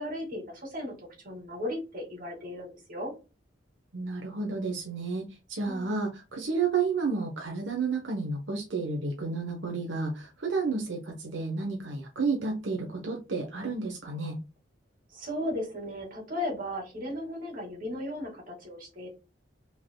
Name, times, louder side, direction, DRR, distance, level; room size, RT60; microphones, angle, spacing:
voice 1, 0.0-3.1 5.7-5.9 15.1-19.1, left 1 dB, 45° right, 0 dB, 2.3 m, -36 dB
voice 2, 3.9-14.4, right 4 dB, 85° right, 0 dB, 1.1 m, -31 dB
5.0 x 4.0 x 2.3 m, 0.30 s
head